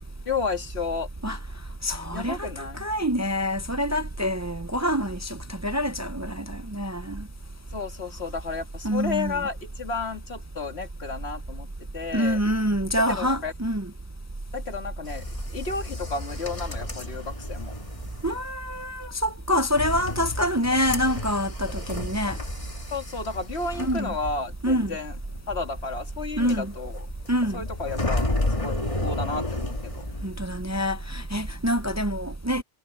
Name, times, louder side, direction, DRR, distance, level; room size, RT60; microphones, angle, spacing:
voice 1, 0.3-1.1 2.1-2.9 7.7-11.7 11.9-12.4 13.2-13.5 14.5-15.2 15.5-17.7 22.9-25.1 25.5-27.1 27.5-30.1, left 4 dB, 80° left, 2.2 m, -32 dB
voice 2, 1.8-2.5 2.8-7.2 8.8-9.5 12.1-13.9 18.2-22.4 23.8-24.1 24.6-24.9 26.4-26.7 27.3-27.6 30.2-32.6, equal, 20° right, 0.6 m, -26 dB
sound 1, 15.0-31.0 31.2-32.0, left 1 dB, 30° left, 1.9 m, -33 dB
omnidirectional pair, 1.1 m